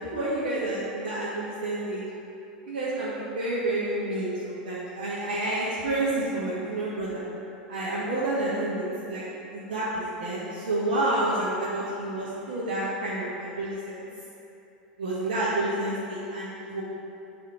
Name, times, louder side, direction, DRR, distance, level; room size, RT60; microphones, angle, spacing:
voice 1, 0.1-2.0 2.7-7.3 7.7-9.2 9.5-14.0 15.0-16.8, right 1 dB, 70° right, -8 dB, 0.7 m, -29 dB
4.3 x 2.6 x 4.7 m, 2.8 s
figure-of-eight pair, 85°, 5 cm